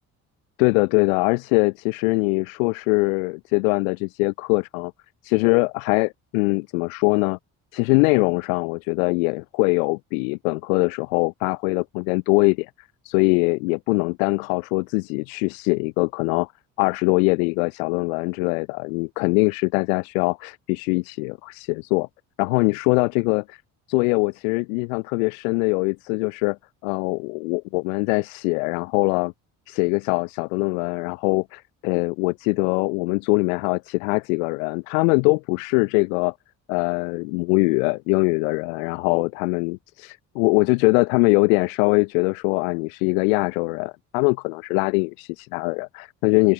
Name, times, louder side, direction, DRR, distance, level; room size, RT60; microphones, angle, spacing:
voice 1, 0.6-4.9 5.2-7.4 7.7-12.7 13.0-16.5 16.8-22.1 22.4-23.6 23.9-26.6 26.8-29.3 29.7-36.3 36.7-46.5, left 32 dB, 85° left, 0.7 m, -22 dB
open air
hypercardioid pair, 55°, 39 cm